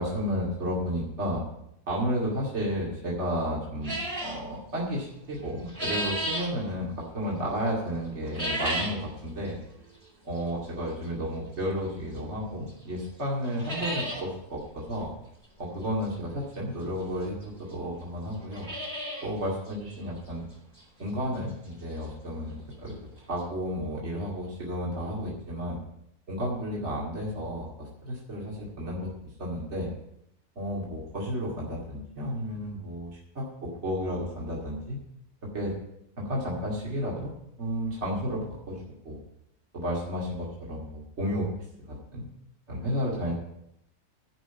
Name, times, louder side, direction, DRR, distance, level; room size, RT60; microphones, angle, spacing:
voice 1, 0.0-1.4 1.9-9.6 10.2-15.1 15.6-18.7 19.2-20.4 21.0-25.8 26.3-29.1 29.4-29.9 30.6-35.0 35.4-35.7 36.2-37.3 37.6-39.2 39.7-41.5 41.9-42.3 42.7-43.4, equal, 45° right, -4 dB, 2.6 m, -32 dB
sound 1, 3.8-4.4 5.4-6.5 8.2-9.0 9.5-9.6 10.4-10.5 12.2-12.3 12.7-12.8 13.0-13.1 13.4-14.2 14.6-14.7 14.9-15.0 16.5-16.6 17.4-17.5 17.7-17.8 18.3-19.3 19.7-19.8 20.3-20.4 20.8-20.9 22.6-22.7 22.9-23.0 23.4-23.5, equal, 30° right, 3.2 m, -32 dB
12.0 x 5.5 x 9.1 m, 0.79 s
omnidirectional pair, 1.6 m